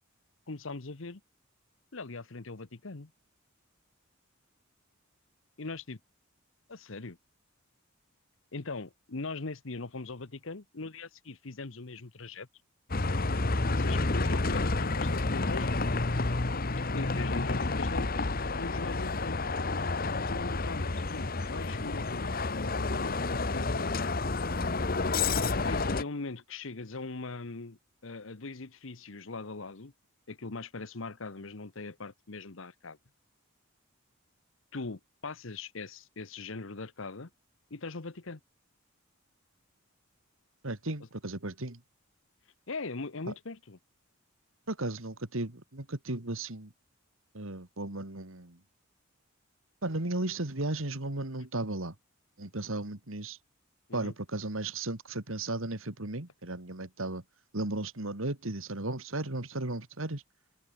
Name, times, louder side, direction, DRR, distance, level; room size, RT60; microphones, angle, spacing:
voice 1, 0.5-1.2 1.9-3.1 5.6-6.0 6.7-7.2 8.5-12.5 13.8-15.8 16.9-18.2 18.6-19.4 20.3-24.1 25.5-29.9 30.3-33.0 34.7-37.3 37.7-38.4 42.7-43.8 53.9-54.1, left 3 dB, 65° left, 1.1 m, -41 dB
Bus, 12.9-26.0, left 3 dB, 45° left, 1.2 m, -30 dB
voice 2, 40.6-41.8 44.7-46.7 47.3-48.6 49.8-51.9 52.4-53.4 53.9-57.2 57.5-60.2, right 2 dB, 70° right, 2.4 m, -35 dB
head